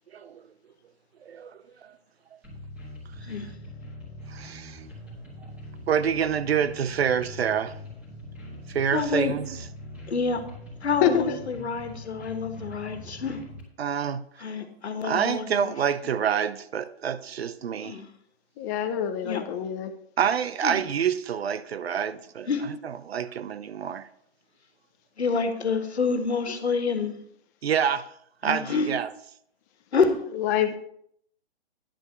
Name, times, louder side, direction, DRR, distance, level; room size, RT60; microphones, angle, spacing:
sound 1, 2.4-13.6, equal, 5° right, 2.3 m, -42 dB
voice 1, 3.2-3.5 8.9-9.3 10.1-10.5 10.8-13.4 14.4-15.8 17.8-18.1 19.2-19.4 20.6-20.8 22.5-22.7 25.2-27.2 28.4-28.9 29.9-30.1, left 4 dB, 85° left, 1.7 m, -27 dB
voice 2, 4.3-4.8 5.9-7.7 8.7-9.5 13.8-14.2 15.0-18.0 20.2-24.1 27.6-28.1 28.4-29.1, right 8 dB, 70° right, 0.8 m, -27 dB
voice 3, 11.0-11.4 18.6-19.9 30.3-30.8, left 9 dB, 15° left, 0.5 m, -25 dB
10.0 x 5.3 x 6.4 m
hypercardioid pair, 150°, 32 cm